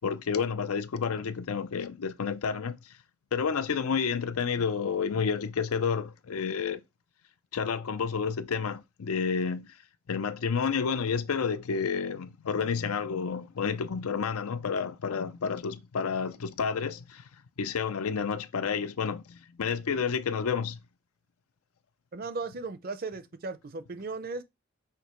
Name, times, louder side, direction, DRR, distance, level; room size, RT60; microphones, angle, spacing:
voice 1, 0.0-2.8 3.3-6.8 7.5-9.8 10.1-17.2 17.6-20.8, left 6 dB, 85° left, 0.5 m, -30 dB
voice 2, 22.1-24.4, right 3 dB, 40° right, 0.5 m, -36 dB
5.9 x 3.0 x 3.0 m
head